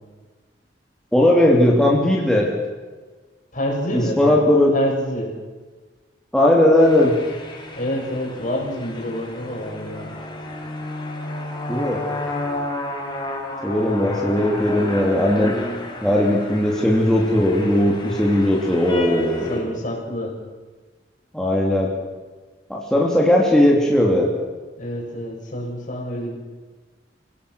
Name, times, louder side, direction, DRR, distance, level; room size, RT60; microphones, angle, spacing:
voice 1, 1.1-2.5 3.9-4.7 6.3-7.1 11.7-12.0 13.6-15.5 16.0-19.6 21.3-21.9 22.7-24.3, left 1 dB, 5° left, -3 dB, 3.0 m, -17 dB
voice 2, 3.5-4.4 4.7-5.3 7.7-10.1 13.8-14.0 19.5-20.4 24.8-26.4, equal, 45° left, 0 dB, 6.9 m, -27 dB
sound 1, 6.8-19.6, left 2 dB, 25° left, 4.6 m, -32 dB
27.5 x 18.0 x 6.4 m, 1.3 s
head